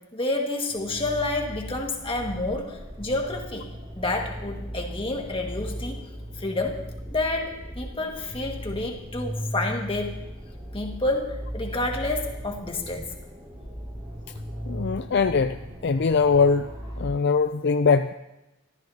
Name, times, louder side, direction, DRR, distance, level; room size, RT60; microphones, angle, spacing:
voice 1, 0.1-3.7 4.0-6.0 6.4-6.8 7.1-10.2 10.7-13.1, left 2 dB, 25° left, 2 dB, 1.8 m, -29 dB
sound 1, 0.7-17.1, equal, 25° right, 6.2 m, -37 dB
voice 2, 14.7-15.6 15.8-16.7 17.0-18.1, left 5 dB, 55° left, 9 dB, 0.4 m, -21 dB
24.5 x 14.0 x 2.8 m, 0.96 s
head